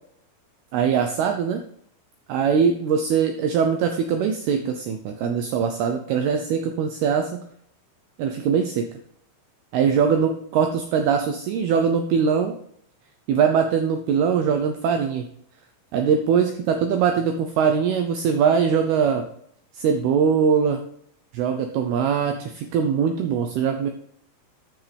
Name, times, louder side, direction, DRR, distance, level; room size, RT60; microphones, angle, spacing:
voice 1, 0.7-1.6 2.3-7.4 8.2-8.9 9.7-12.5 13.3-15.3 15.9-19.3 19.7-20.8 21.3-23.9, right 6 dB, 85° right, 6 dB, 2.2 m, -22 dB
12.0 x 5.9 x 3.4 m, 0.67 s
omnidirectional pair, 5.4 m